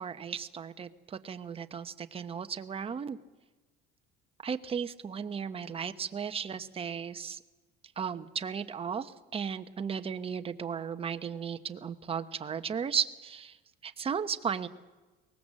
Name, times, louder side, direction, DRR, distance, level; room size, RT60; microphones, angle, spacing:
voice 1, 0.0-3.2 4.4-7.4 8.0-13.6 13.8-14.7, right 7 dB, 30° right, 9 dB, 1.0 m, -35 dB
23.0 x 20.0 x 7.6 m, 1.2 s
cardioid pair, 130°, 20 cm